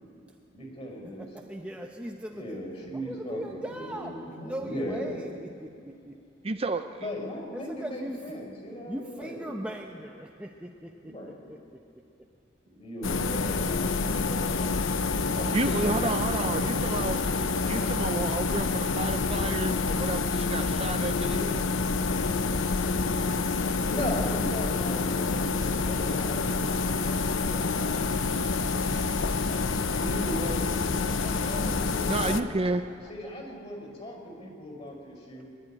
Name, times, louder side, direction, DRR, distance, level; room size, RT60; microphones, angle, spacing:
voice 1, 0.5-1.3 2.3-5.3 7.0-9.5 11.0-11.5 12.6-14.4 14.7-15.5 16.5-16.6 23.8-28.0 29.4-32.5 33.1-35.4, equal, 30° left, 1 dB, 5.2 m, -38 dB
voice 2, 1.0-2.6 2.9-6.2 7.5-8.2 8.9-11.1 11.5-11.6 14.6-14.7 15.7-18.2 32.3-32.6 33.5-33.6 34.3-34.5 35.3-35.4, right 1 dB, 5° right, 1 dB, 0.8 m, -40 dB
voice 3, 6.4-6.8 15.5-17.2 17.7-21.7 32.1-32.8, right 3 dB, 30° right, 8 dB, 0.5 m, -31 dB
sound 1, 13.0-32.4, left 4 dB, 85° left, 0.8 m, -27 dB
23.5 x 11.5 x 9.9 m, 2.5 s
head